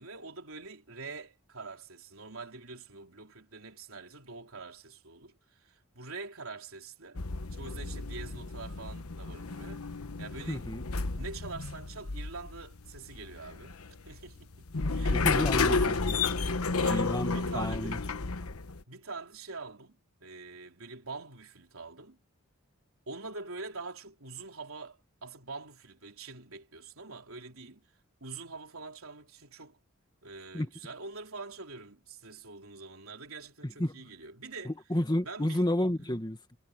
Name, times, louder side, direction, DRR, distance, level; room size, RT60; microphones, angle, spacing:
voice 1, 0.0-7.2 7.5-9.9 10.2-10.6 11.1-13.8 14.1-16.1 16.8-18.0 18.9-22.2 23.1-27.8 28.2-29.8 30.2-34.7 35.3-35.6, right 3 dB, 70° right, 3.6 m, -45 dB
sound 1, 7.1-18.8, left 4 dB, 85° left, 1.1 m, -32 dB
voice 2, 10.5-10.8 15.1-16.2 16.9-18.0 30.5-30.7 33.6-34.0 34.6-36.4, left 1 dB, 20° left, 1.7 m, -31 dB
head